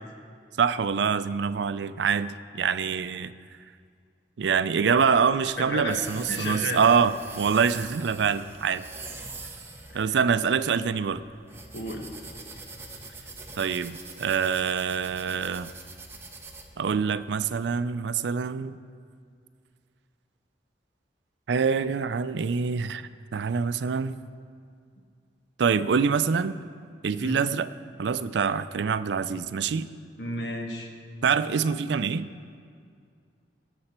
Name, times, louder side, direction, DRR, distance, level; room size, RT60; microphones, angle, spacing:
voice 1, 0.6-3.3 4.4-8.8 9.9-11.2 13.6-15.7 16.8-18.8 21.5-24.2 25.6-26.5 27.0-27.7 28.0-29.9 31.2-32.3, right 6 dB, 75° right, 14 dB, 0.4 m, -25 dB
sound 1, 4.9-17.9, right 3 dB, 15° right, 0.9 m, -44 dB
voice 2, 5.6-6.0 6.3-6.8 9.9-10.0 11.7-12.0 27.2-27.4 30.2-30.9, left 1 dB, 75° left, 2 dB, 1.4 m, -32 dB
18.0 x 7.0 x 4.4 m, 2.2 s
head